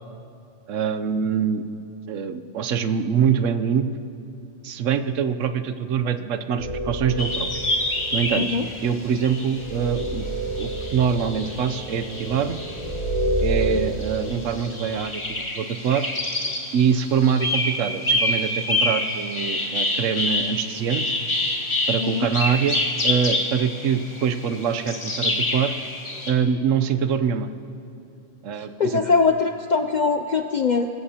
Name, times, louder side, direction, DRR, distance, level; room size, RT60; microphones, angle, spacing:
voice 1, 0.7-1.6 2.1-3.9 4.6-7.5 8.1-10.3 10.6-12.6 13.4-16.1 16.7-21.1 21.9-22.8 23.0-25.7 26.3-27.5 28.4-29.0, right 7 dB, 80° right, 10 dB, 1.0 m, -24 dB
sound 1, 6.6-13.7, right 1 dB, 85° left, 4.5 m, -29 dB
sound 2, 7.2-13.0 13.4-26.3, left 1 dB, 25° left, 1.2 m, -27 dB
voice 2, 28.8-30.9, left 4 dB, 60° left, 6 dB, 0.4 m, -21 dB
24.0 x 14.5 x 2.8 m, 2.7 s
omnidirectional pair, 1.3 m